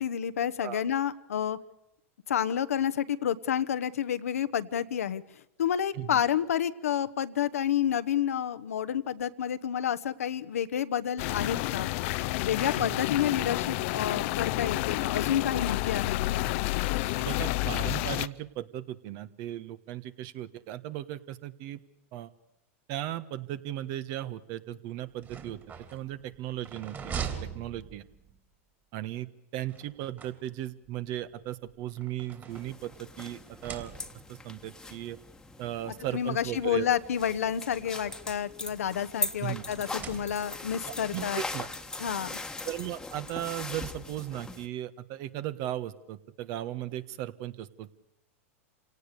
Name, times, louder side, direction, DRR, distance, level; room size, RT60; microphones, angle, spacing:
voice 1, 0.0-1.6 2.3-5.2 5.6-11.9 12.4-16.5 35.8-41.4 42.0-42.4, left 9 dB, 85° left, 12 dB, 1.1 m, -29 dB
sound 1, 11.2-18.3, left 18 dB, 60° left, 0.7 m, -30 dB
voice 2, 17.2-21.8 22.1-22.3 22.9-25.6 25.9-27.3 27.5-28.0 28.9-33.9 34.3-35.2 35.6-36.9 39.4-39.6 41.1-41.7 42.6-47.9, right 13 dB, 50° right, 14 dB, 1.4 m, -36 dB
sound 2, 25.1-28.4 29.7-30.9 31.7-33.1 33.5-34.4 35.3-35.4 35.8-35.9 37.0-38.4 39.6-40.8, right 7 dB, 25° right, 3.4 m, -42 dB
sound 3, 32.5-44.7, left 3 dB, 10° left, 1.5 m, -40 dB
27.5 x 18.0 x 6.8 m, 0.87 s
hypercardioid pair, 115°, 8 cm